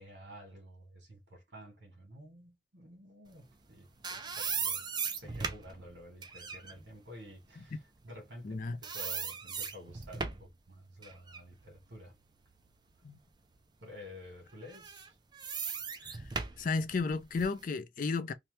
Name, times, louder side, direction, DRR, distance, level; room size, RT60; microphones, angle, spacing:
voice 1, 0.0-12.1 13.8-15.2, left 1 dB, 85° right, 1.3 m, -51 dB
sound 1, 3.6-8.5 8.8-10.6 11.0-13.0 13.5-13.6 14.6-17.6, right 5 dB, 25° right, 0.4 m, -39 dB
voice 2, 8.4-8.8 13.0-13.2 16.1-16.2 16.6-18.3, left 4 dB, 50° left, 0.4 m, -33 dB
2.8 x 2.2 x 3.1 m
head